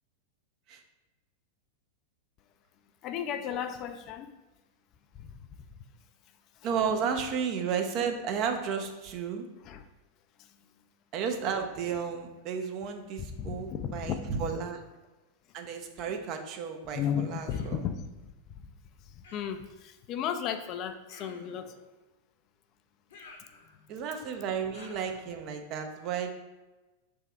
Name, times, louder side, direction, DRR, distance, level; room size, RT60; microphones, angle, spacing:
voice 1, 3.0-4.3 5.1-5.3 6.6-6.7 9.6-9.8 10.4-10.5 13.4-14.3 16.9-18.3 18.6-18.7 19.0-21.8, left 8 dB, 35° left, 8 dB, 0.3 m, -35 dB
voice 2, 6.6-9.4 11.1-14.8 15.5-17.8 23.9-26.3, right 6 dB, 40° right, 5 dB, 0.5 m, -33 dB
Human voice, 17.5-17.9 19.2-19.7 21.1-21.7 23.1-24.0 24.7-25.3, left 2 dB, 60° left, 0.7 m, -52 dB
3.5 x 3.3 x 4.2 m, 1.1 s
figure-of-eight pair, 90°, 0 cm